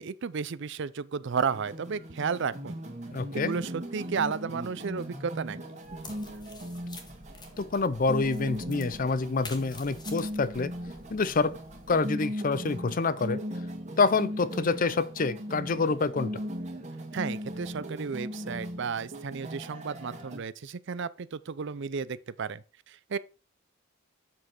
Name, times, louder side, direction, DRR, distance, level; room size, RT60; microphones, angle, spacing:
voice 1, 0.0-2.8 3.3-5.8 17.1-23.2, right 6 dB, 60° right, 0.5 m, -33 dB
sound 1, 1.5-20.4, equal, 35° right, 1.9 m, -38 dB
voice 2, 3.1-3.5 7.6-10.7 11.1-11.5 11.9-13.4 14.0-16.3, left 4 dB, 45° left, 0.6 m, -27 dB
sound 2, 5.8-12.0, left 3 dB, 20° left, 1.5 m, -49 dB
7.5 x 6.3 x 4.4 m
head